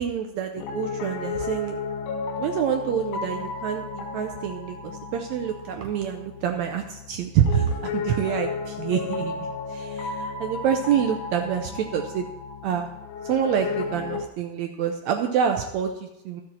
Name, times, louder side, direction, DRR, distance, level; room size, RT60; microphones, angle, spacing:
voice 1, 0.0-1.8 2.4-9.4 9.7-12.3 12.6-12.9 13.2-16.4, right 8 dB, 90° right, 4 dB, 1.6 m, -27 dB
Piano, 0.6-14.3, left 4 dB, 75° left, 2.1 m, -33 dB
13.0 x 7.7 x 4.3 m, 0.87 s
omnidirectional pair, 4.0 m